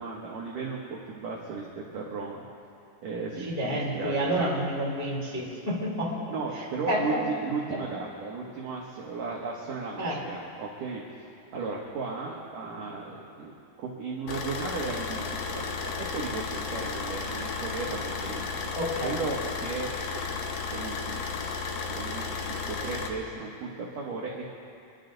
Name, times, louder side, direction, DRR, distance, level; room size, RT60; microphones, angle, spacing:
voice 1, 0.0-2.4 3.0-4.5 6.3-13.5 13.8-18.8 19.0-21.3 21.8-24.6, right 4 dB, 70° right, -3 dB, 2.0 m, -36 dB
voice 2, 3.5-6.3 6.9-7.2 7.7-7.8 10.0-10.2 18.7-19.2, equal, 15° left, -6 dB, 1.5 m, -29 dB
Car / Idling, 14.3-23.1, left 5 dB, 90° left, 2.0 m, -33 dB
26.5 x 11.5 x 3.9 m, 2.4 s
omnidirectional pair, 5.7 m